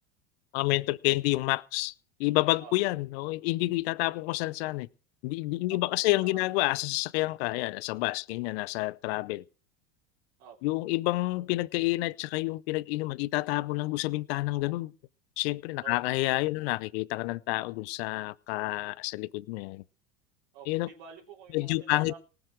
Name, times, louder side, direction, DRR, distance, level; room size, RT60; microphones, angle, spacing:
voice 1, 0.5-1.9 2.2-4.9 5.2-9.4 10.6-14.9 15.4-19.8 20.7-20.9 21.5-22.1, left 20 dB, 65° left, 0.7 m, -29 dB
voice 2, 5.7-6.7 10.4-10.6 15.8-16.1 20.5-22.2, right 7 dB, 65° right, 3.6 m, -49 dB
18.5 x 7.0 x 6.2 m
hypercardioid pair, 95°, 34 cm